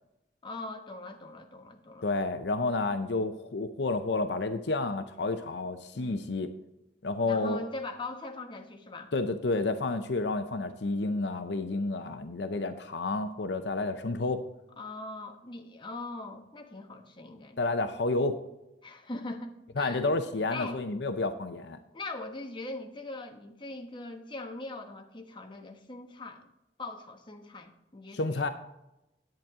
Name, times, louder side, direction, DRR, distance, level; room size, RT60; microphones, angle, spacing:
voice 1, 0.4-2.1 5.9-6.3 7.2-9.1 14.8-17.6 18.8-20.1 20.5-20.8 21.9-26.5 26.8-28.5, left 2 dB, 25° left, 4 dB, 1.1 m, -41 dB
voice 2, 2.0-6.5 7.0-7.7 9.1-14.4 17.6-18.4 19.8-21.8 28.1-28.5, left 3 dB, 70° left, 9 dB, 0.6 m, -30 dB
10.5 x 8.7 x 3.6 m, 0.92 s
head